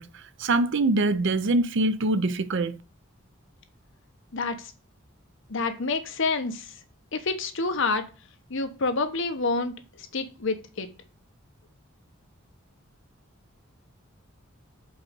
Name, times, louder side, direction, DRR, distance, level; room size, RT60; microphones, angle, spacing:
voice 1, 0.0-2.8, right 2 dB, 60° right, 0.5 m, -24 dB
voice 2, 5.5-6.7 7.1-8.0 8.5-10.9, left 3 dB, 60° left, 1.0 m, -28 dB
5.4 x 4.1 x 5.1 m
head